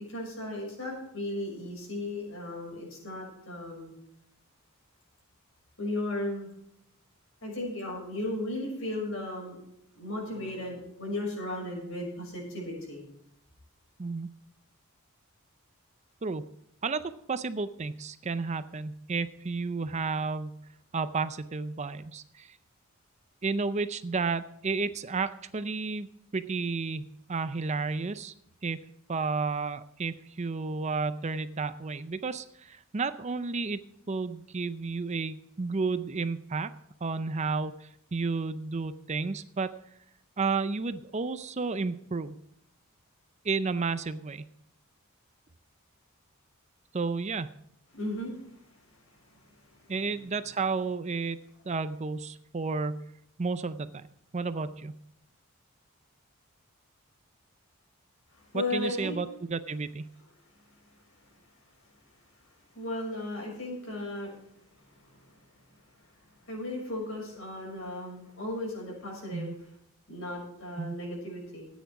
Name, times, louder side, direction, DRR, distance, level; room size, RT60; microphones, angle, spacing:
voice 1, 0.1-3.9 5.8-6.5 7.4-9.6 9.9-13.0 47.9-50.1 58.3-59.2 61.1-61.2 62.7-64.3 64.7-65.4 66.4-69.6 70.1-71.7, left 1 dB, 65° left, -2 dB, 6.4 m, -36 dB
voice 2, 17.3-20.6 20.9-22.5 23.4-26.1 26.3-28.3 28.6-28.8 29.1-33.8 34.1-36.7 37.0-39.7 40.4-42.4 43.4-44.4 46.9-47.5 49.9-51.4 51.7-53.0 53.4-53.9 54.3-54.9 58.5-60.1 69.3-69.5 70.8-70.9, right 4 dB, 30° right, 12 dB, 0.5 m, -32 dB
14.0 x 9.4 x 4.8 m, 0.76 s
head